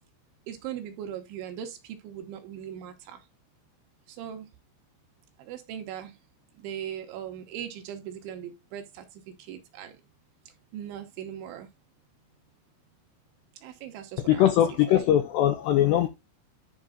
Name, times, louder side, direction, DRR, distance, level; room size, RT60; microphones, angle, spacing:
voice 1, 0.5-3.2 4.1-4.5 5.4-6.2 6.6-10.0 10.7-11.7 13.6-14.5 14.9-15.1, right 10 dB, 75° right, 3.1 m, -39 dB
voice 2, 14.2-16.1, left 12 dB, 80° left, 2.4 m, -21 dB
10.5 x 4.6 x 3.7 m
omnidirectional pair, 5.9 m